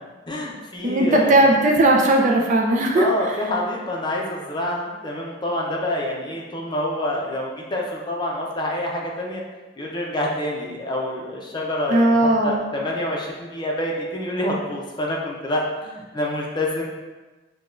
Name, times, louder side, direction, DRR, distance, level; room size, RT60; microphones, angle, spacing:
voice 1, 0.3-1.4 2.9-9.4 9.8-16.8, left 1 dB, 20° left, -2 dB, 0.6 m, -27 dB
voice 2, 0.8-3.4 11.9-12.7, right 1 dB, 40° right, 0 dB, 0.5 m, -18 dB
6.6 x 2.3 x 2.5 m, 1.2 s
head